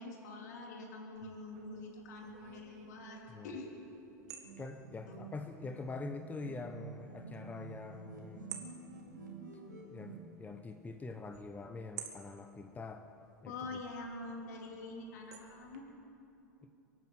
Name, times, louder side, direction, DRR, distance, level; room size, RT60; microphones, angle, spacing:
voice 1, 0.0-3.7 5.1-5.2 13.4-15.8, left 2 dB, 70° left, 1 dB, 3.0 m, -45 dB
sound 1, 1.2-15.8, right 9 dB, 65° right, 1.8 m, -55 dB
sound 2, 4.4-10.2, right 3 dB, 85° right, 2.6 m, -49 dB
voice 2, 4.6-8.5 9.9-13.1 13.4-13.8, left 3 dB, 15° left, 6 dB, 0.9 m, -45 dB
23.5 x 9.6 x 6.1 m, 2.9 s
figure-of-eight pair, 85°, 10 cm